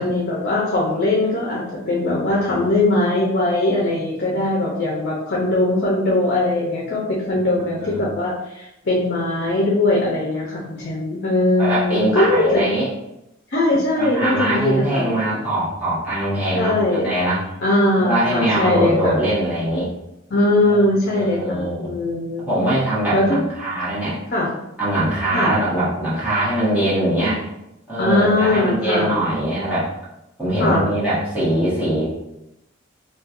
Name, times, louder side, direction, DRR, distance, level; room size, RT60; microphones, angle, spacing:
voice 1, 0.0-12.6 13.5-15.1 16.5-17.1 17.6-19.2 20.3-22.5 23.1-23.4 24.3-24.5 25.3-25.5 28.0-29.1 30.6-30.9, left 2 dB, 55° left, -4 dB, 0.6 m, -20 dB
voice 2, 7.6-8.0 11.6-12.9 14.0-17.4 18.0-19.9 20.6-21.9 22.4-24.2 24.8-27.4 27.9-29.9 30.4-32.0, right 1 dB, 10° right, -11 dB, 1.0 m, -22 dB
4.2 x 2.2 x 2.5 m, 0.88 s
head